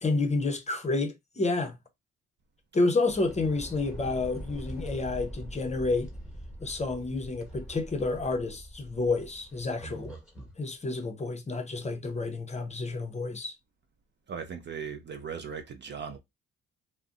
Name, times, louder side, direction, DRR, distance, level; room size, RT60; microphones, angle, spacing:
voice 1, 0.0-1.8 2.7-6.1 6.6-10.1 10.6-13.5, left 3 dB, 25° left, 0.6 m, -29 dB
sound 1, 3.0-10.6, equal, ahead, 1.2 m, -43 dB
voice 2, 14.3-16.2, right 6 dB, 35° right, 0.5 m, -38 dB
2.5 x 2.1 x 3.6 m
cardioid pair, 90°, 30 cm